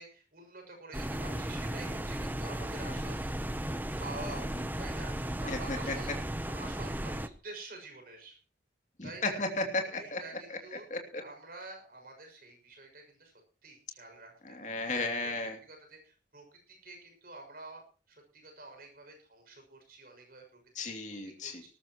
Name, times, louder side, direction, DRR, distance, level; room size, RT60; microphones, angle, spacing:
voice 1, 0.0-3.3 4.0-4.5 4.8-5.1 5.4-6.1 6.5-8.4 9.0-9.4 9.8-10.9 11.2-13.3 13.6-14.7 15.2-15.3 15.6-20.6 20.8-20.9 21.2-21.7, right 2 dB, 50° right, 3 dB, 6.5 m, -48 dB
sound 1, 0.9-7.3, right 1 dB, 10° right, 0.8 m, -35 dB
voice 2, 5.5-5.9 9.0-10.2 10.5-10.6 10.9-11.2 14.5-15.6 20.7-21.6, left 2 dB, 40° left, 4 dB, 2.8 m, -34 dB
19.0 x 14.5 x 3.0 m, 0.37 s
head